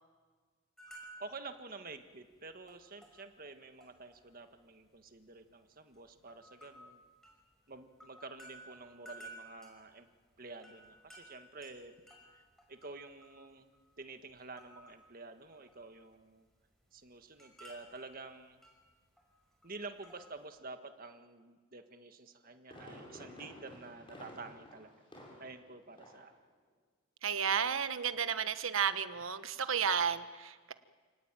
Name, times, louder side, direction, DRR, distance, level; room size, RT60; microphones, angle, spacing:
sound 1, 0.8-1.5 1.8-2.0 2.3-4.2 4.5-5.4 5.9-13.9 14.2-15.1 15.4-16.1 16.3-20.5, right 1 dB, ahead, 5.8 m, -56 dB
voice 1, 1.2-7.0 7.7-10.1 10.4-11.9 12.3-12.4 12.7-13.6 14.0-16.5 16.9-18.6 19.6-24.9 25.4-26.3, right 3 dB, 40° right, 7 dB, 1.7 m, -49 dB
Fireworks, 22.2-25.7 26.0-26.3 26.7-26.8, left 1 dB, 25° left, 6.4 m, -52 dB
voice 2, 27.2-30.7, right 7 dB, 70° right, 11 dB, 1.2 m, -32 dB
28.5 x 18.5 x 9.1 m, 1.5 s
head